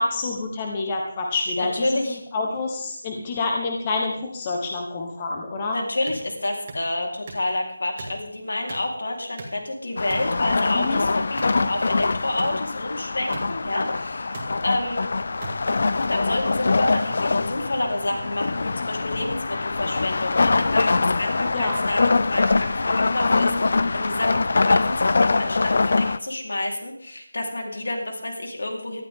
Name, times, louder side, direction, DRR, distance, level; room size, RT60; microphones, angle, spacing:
voice 1, 0.0-5.8 10.7-11.0 21.5-21.8, left 3 dB, 15° left, 1 dB, 1.1 m, -27 dB
voice 2, 1.6-2.2 5.7-15.1 16.1-29.0, left 1 dB, 70° left, 2 dB, 4.0 m, -29 dB
sound 1, 6.1-6.2 6.7-6.8 7.3-7.5 8.0-8.2 8.7-8.9 9.4-9.6 10.1-10.3 11.4-11.6 12.4-12.5 13.3-13.5 14.3-14.5 15.4-15.5, right 3 dB, 20° right, 2.1 m, -37 dB
sound 2, 10.0-26.2, left 3 dB, 40° left, 0.5 m, -23 dB
18.5 x 13.0 x 3.7 m, 0.69 s
figure-of-eight pair, 180°, 0 cm